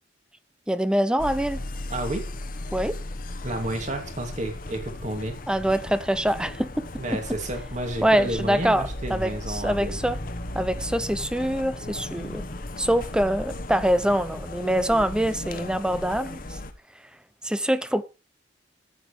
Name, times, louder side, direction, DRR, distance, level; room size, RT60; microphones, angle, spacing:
voice 1, 0.7-1.6 2.7-3.0 5.5-7.2 8.0-10.2 10.5-12.4 12.8-16.6 17.4-18.0, equal, 5° right, 0.6 m, -24 dB
sound 1, 1.2-16.7, left 1 dB, 50° left, 1.1 m, -36 dB
voice 2, 1.9-2.2 3.4-5.4 7.0-10.0, right 1 dB, 40° right, 2.4 m, -31 dB
14.0 x 9.0 x 3.2 m
head